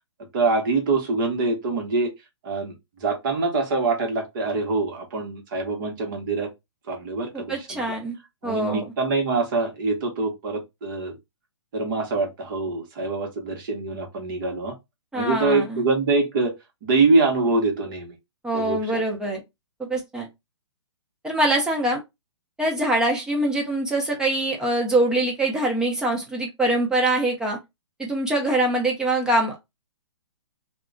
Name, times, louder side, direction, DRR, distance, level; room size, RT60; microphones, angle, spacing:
voice 1, 0.3-2.1 2.4-2.7 3.0-6.5 6.9-8.0 8.4-11.2 11.7-14.8 15.1-16.5 16.8-18.1 18.5-19.0, right 3 dB, 45° right, 0.9 m, -24 dB
voice 2, 7.3-8.2 8.4-8.9 15.1-15.8 18.4-19.4 19.8-20.3 21.2-22.0 22.6-27.6 28.0-29.6, right 1 dB, 5° right, 0.6 m, -24 dB
2.4 x 2.0 x 3.7 m
hypercardioid pair, 140°, 15 cm